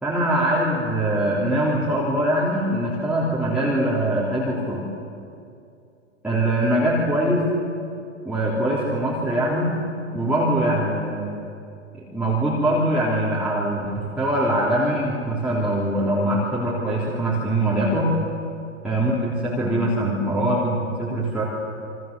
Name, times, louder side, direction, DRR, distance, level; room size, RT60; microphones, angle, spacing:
voice 1, 0.0-4.9 6.2-7.5 8.2-9.8 10.1-11.3 12.0-18.2 18.8-21.4, right 1 dB, 5° right, -7 dB, 3.7 m, -22 dB
28.5 x 24.5 x 7.0 m, 2.5 s
hypercardioid pair, 150°, 37 cm